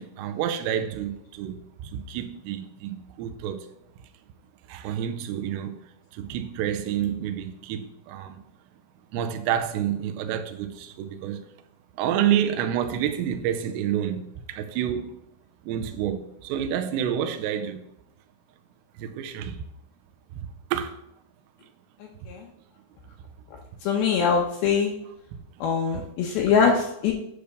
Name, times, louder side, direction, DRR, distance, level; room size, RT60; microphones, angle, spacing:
voice 1, 0.0-3.7 4.7-5.8 6.1-8.4 9.1-11.4 11.9-15.3 15.6-17.8 19.0-19.6 20.3-21.0 25.3-25.4 25.9-26.0, right 9 dB, 85° right, 2.8 m, -29 dB
voice 2, 22.0-22.5 23.8-24.9 25.6-27.1, left 6 dB, 75° left, 2.5 m, -23 dB
9.7 x 3.4 x 6.6 m
omnidirectional pair, 5.0 m